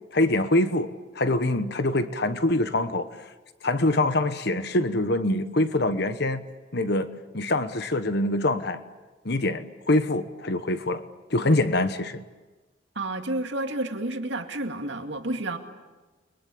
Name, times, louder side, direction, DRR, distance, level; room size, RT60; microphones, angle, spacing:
voice 1, 0.1-3.1 3.6-6.4 6.7-7.1 7.3-8.8 9.2-11.0 11.3-12.2, left 1 dB, 55° left, 10 dB, 1.2 m, -24 dB
voice 2, 13.0-15.6, right 2 dB, 70° right, 5 dB, 2.3 m, -30 dB
29.5 x 22.5 x 8.6 m, 1.2 s
head